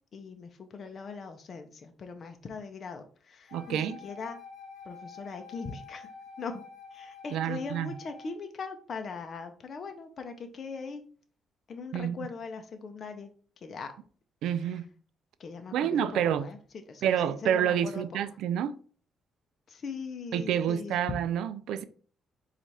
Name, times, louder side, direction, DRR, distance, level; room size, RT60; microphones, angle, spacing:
voice 1, 0.1-4.4 4.8-6.1 6.4-6.6 6.9-11.0 11.7-13.3 13.6-13.9 14.5-14.8 15.4-16.6 16.9-18.1 19.7-21.0, left 4 dB, 50° left, 0.6 m, -40 dB
Wind instrument woodwind instrument, 3.5-8.4, left 4 dB, 70° left, 0.9 m, -48 dB
voice 2, 3.5-4.0 7.3-7.9 11.9-12.3 14.4-14.9 15.7-16.5 17.0-18.8 20.3-21.8, right 9 dB, 85° right, 0.3 m, -28 dB
4.4 x 2.4 x 4.1 m
cardioid pair, 90°, 0 cm